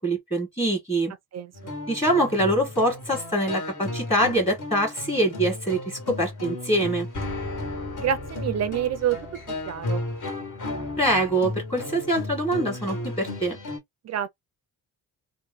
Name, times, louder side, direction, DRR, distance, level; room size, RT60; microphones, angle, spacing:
voice 1, 0.0-1.1 1.9-7.1 11.0-13.6, right 1 dB, 15° left, 1.5 m, -24 dB
sound 1, 1.5-13.8, left 2 dB, 55° left, 1.7 m, -34 dB
voice 2, 8.0-9.2 9.7-10.0 14.0-14.3, right 9 dB, 50° right, 0.4 m, -27 dB
3.0 x 2.1 x 3.6 m
cardioid pair, 120°, 36 cm